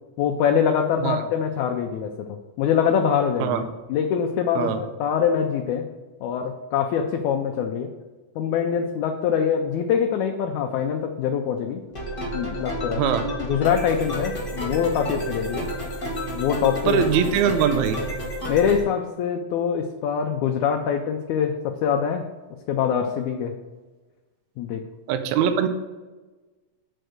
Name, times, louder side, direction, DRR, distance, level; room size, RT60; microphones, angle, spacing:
voice 1, 0.2-3.6 3.9-5.9 6.2-7.9 8.4-11.8 12.3-13.1 13.4-15.7 16.3-17.0 18.5-22.3 22.7-23.5 24.6-24.8, left 7 dB, 80° left, 4 dB, 1.9 m, -24 dB
sound 1, 11.9-18.8, equal, 25° left, 1.4 m, -30 dB
voice 2, 13.0-13.3 16.9-18.0 25.1-25.7, right 8 dB, 80° right, 9 dB, 1.8 m, -22 dB
7.7 x 4.5 x 6.4 m, 1.2 s
omnidirectional pair, 3.7 m